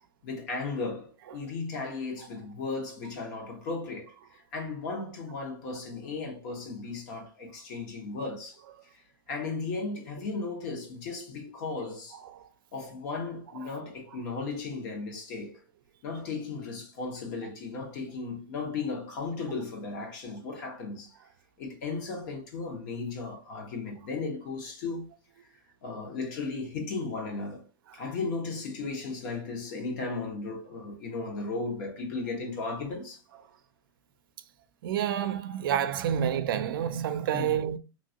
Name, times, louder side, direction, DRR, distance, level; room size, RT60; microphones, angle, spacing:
voice 1, 0.2-4.1 4.5-8.6 9.3-12.2 12.7-15.6 16.0-21.1 21.6-25.1 25.8-27.6 27.9-33.2 37.3-37.6, left 4 dB, 55° left, 1.3 m, -35 dB
voice 2, 34.8-37.8, right 9 dB, 75° right, 0.4 m, -29 dB
2.9 x 2.6 x 2.8 m
supercardioid pair, 140°, 12 cm